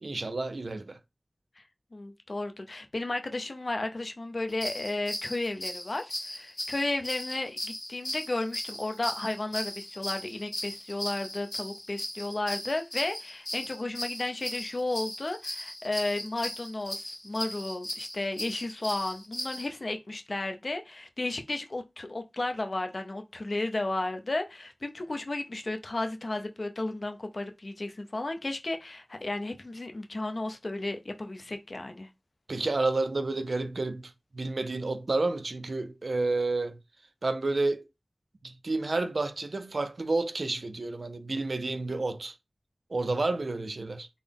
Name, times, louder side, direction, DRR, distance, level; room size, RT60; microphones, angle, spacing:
voice 1, 0.0-1.0 32.5-36.8 37.2-37.8 38.4-42.3 42.9-44.1, right 3 dB, 75° right, 0.4 m, -30 dB
voice 2, 1.9-32.1, left 2 dB, 60° left, 0.5 m, -33 dB
sound 1, 4.5-19.7, left 1 dB, 35° left, 1.5 m, -38 dB
3.8 x 2.0 x 3.4 m
wide cardioid pair, 65°, 0 cm